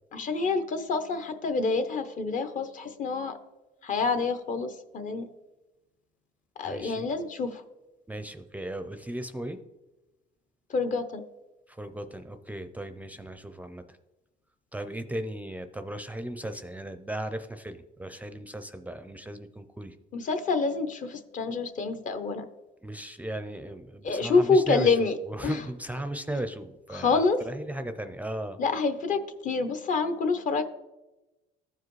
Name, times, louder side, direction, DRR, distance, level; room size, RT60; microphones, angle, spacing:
voice 1, 0.1-3.4 3.8-5.3 6.6-7.6 10.7-11.2 20.1-22.4 24.0-25.1 25.4-25.6 26.9-27.4 28.6-30.6, left 4 dB, 50° left, 9 dB, 0.8 m, -27 dB
voice 2, 6.6-7.1 8.1-9.6 11.7-14.0 14.7-20.0 22.8-25.0 25.3-28.6, right 1 dB, 10° right, 9 dB, 0.4 m, -36 dB
14.5 x 4.9 x 3.1 m, 1.0 s
cardioid pair, 110°, 17 cm